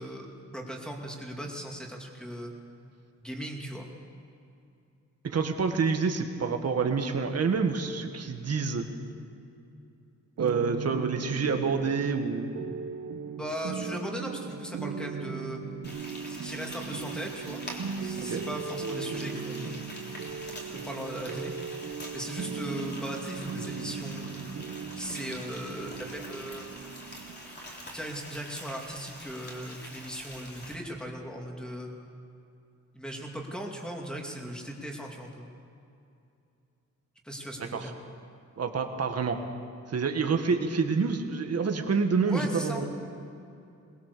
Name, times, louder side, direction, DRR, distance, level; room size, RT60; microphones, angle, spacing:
voice 1, 0.0-2.5 3.2-3.9 13.3-15.6 16.3-17.6 18.0-19.8 20.7-21.5 21.8-24.4 25.0-26.7 27.9-31.9 32.9-35.5 37.2-37.9 42.3-42.9, equal, 5° left, 0 dB, 2.5 m, -38 dB
voice 2, 5.2-8.9 10.4-12.5 18.2-18.4 37.7-37.9 38.6-39.4 39.9-42.8, right 5 dB, 55° right, 5 dB, 1.8 m, -27 dB
sound 1, 10.4-30.0, right 6 dB, 75° right, 1.2 m, -38 dB
Frying (food), 15.8-30.7, left 1 dB, 35° left, 3.3 m, -45 dB
22.5 x 20.5 x 6.9 m, 2.6 s
wide cardioid pair, 175°, 30 cm